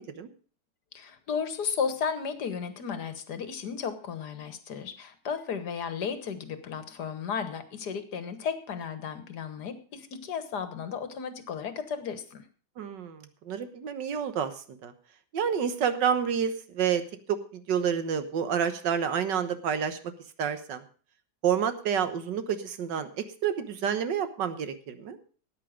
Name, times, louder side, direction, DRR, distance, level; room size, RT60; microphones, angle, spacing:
voice 1, 0.9-12.4, left 6 dB, 65° left, 11 dB, 1.8 m, -34 dB
voice 2, 12.8-14.5 14.8-14.9 15.3-17.0 17.3-20.0 20.4-20.8 21.4-25.2, right 8 dB, 80° right, 11 dB, 1.8 m, -29 dB
14.0 x 9.5 x 5.0 m, 0.40 s
omnidirectional pair, 1.9 m